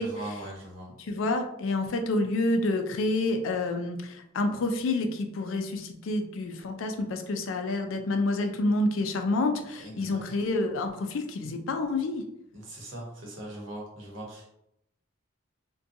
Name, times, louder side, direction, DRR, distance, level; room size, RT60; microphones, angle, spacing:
voice 1, 0.0-0.9 9.8-10.2 12.5-14.5, right 1 dB, 70° right, -2 dB, 0.9 m, -40 dB
voice 2, 1.0-12.2, left 2 dB, 75° left, 5 dB, 0.4 m, -28 dB
2.6 x 2.2 x 2.6 m, 0.79 s
head